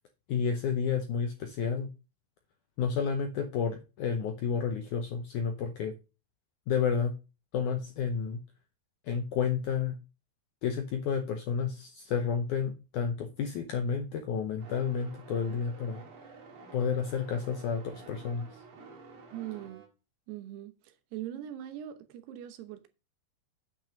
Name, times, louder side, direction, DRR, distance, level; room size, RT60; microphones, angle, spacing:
voice 1, 0.3-1.9 2.8-5.9 6.7-7.1 7.5-8.4 9.1-9.9 10.6-16.0 16.7-18.4, left 6 dB, 80° left, 1.8 m, -31 dB
sound 1, 14.6-19.9, right 4 dB, 55° right, 3.1 m, -50 dB
voice 2, 19.3-19.9 20.3-22.9, right 12 dB, 80° right, 3.0 m, -41 dB
8.7 x 6.1 x 5.1 m
omnidirectional pair, 4.7 m